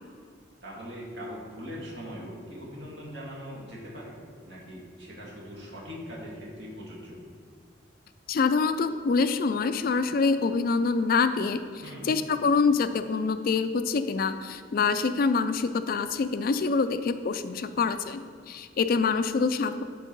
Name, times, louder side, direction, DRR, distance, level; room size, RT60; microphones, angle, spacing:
voice 1, 0.6-4.2 4.5-7.2 11.8-12.1, equal, 60° right, -4 dB, 2.3 m, -41 dB
voice 2, 8.3-11.6 12.0-19.8, left 4 dB, 50° left, 10 dB, 0.4 m, -25 dB
10.5 x 4.7 x 5.3 m, 2.1 s
head